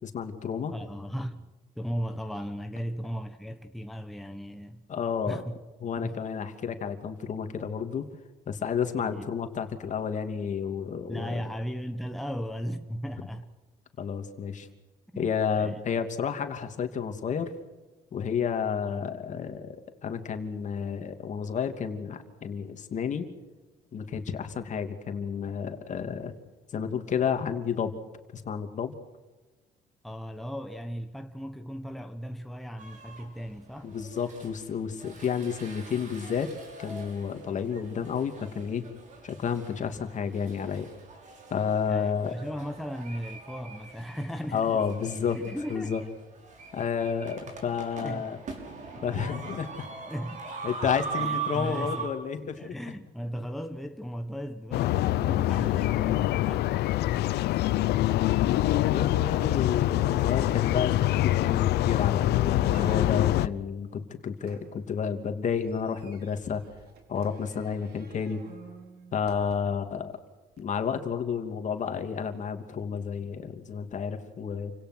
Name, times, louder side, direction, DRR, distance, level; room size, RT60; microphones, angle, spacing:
voice 1, 0.0-0.7 4.9-5.4 5.8-8.1 8.5-11.4 14.0-14.7 15.1-17.5 18.1-23.3 23.9-26.3 26.7-27.9 28.3-28.9 33.8-36.5 36.8-38.9 39.2-40.9 41.5-42.3 44.5-45.4 45.7-46.0 46.7-48.4 49.0-49.9 50.6-52.7 58.3-66.6 67.1-68.4 69.1-70.1 70.6-74.7, left 7 dB, 45° left, 2.9 m, -31 dB
voice 2, 0.7-1.5 1.7-4.9 5.3-5.6 6.0-6.2 9.1-9.2 11.1-13.5 15.1-15.3 15.6-15.8 18.9-19.1 30.0-33.9 41.8-44.9 45.3-45.9 48.0-48.2 50.1-50.5 51.2-52.1 52.6-56.7 60.2-60.5 69.7-69.9, equal, ahead, 1.3 m, -37 dB
sound 1, 32.8-33.3 33.8-52.1, right 5 dB, 45° right, 6.0 m, -41 dB
sound 2, 54.7-63.5, left 15 dB, 75° left, 0.9 m, -25 dB
Door Creak, 62.7-63.4 64.4-69.9 70.5-70.6, right 5 dB, 70° right, 4.6 m, -52 dB
29.0 x 17.5 x 6.3 m
cardioid pair, 110°, 17 cm